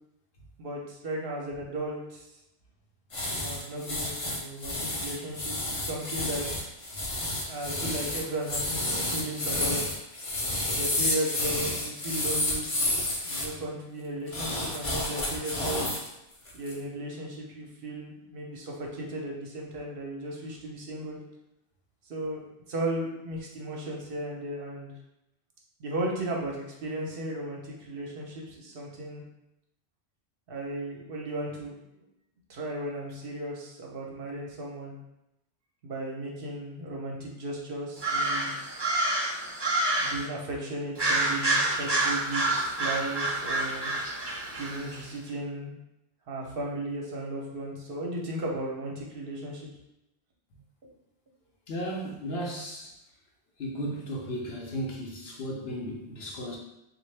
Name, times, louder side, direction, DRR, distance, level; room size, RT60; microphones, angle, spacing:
voice 1, 0.6-2.3 3.2-6.5 7.4-9.8 10.7-12.7 13.2-15.9 16.5-21.2 22.1-24.9 25.8-29.2 30.5-32.0 32.5-35.0 35.8-38.5 40.0-43.9 44.6-45.7 46.3-49.6, right 1 dB, 60° right, -1 dB, 0.9 m, -35 dB
sound 1, 3.1-13.5 14.3-16.1 16.5-16.7, left 1 dB, 35° left, 0.6 m, -30 dB
sound 2, 38.0-40.3 41.0-45.0, right 2 dB, 25° right, 0.6 m, -28 dB
voice 2, 51.7-52.9 53.6-56.6, equal, 65° left, -2 dB, 0.8 m, -35 dB
3.5 x 2.4 x 3.2 m, 0.86 s
omnidirectional pair, 1.2 m